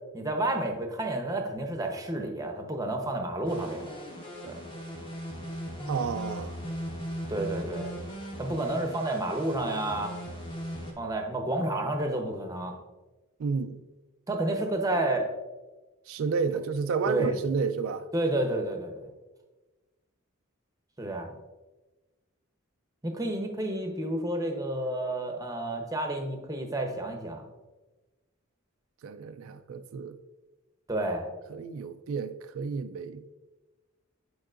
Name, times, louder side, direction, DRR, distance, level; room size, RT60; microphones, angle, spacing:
voice 1, 0.1-3.9 4.4-4.6 7.3-7.9 8.4-10.1 11.0-12.8 14.3-15.3 17.1-17.3 18.1-19.0 21.0-21.3 23.0-27.4 30.9-31.3, right 1 dB, 15° right, 0.7 m, -30 dB
sound 1, 3.4-10.9, equal, 25° left, 1.0 m, -38 dB
voice 2, 5.9-6.6 13.4-13.8 16.1-18.1 29.0-30.2 31.5-33.2, right 5 dB, 75° right, 0.3 m, -31 dB
9.0 x 4.7 x 2.5 m
head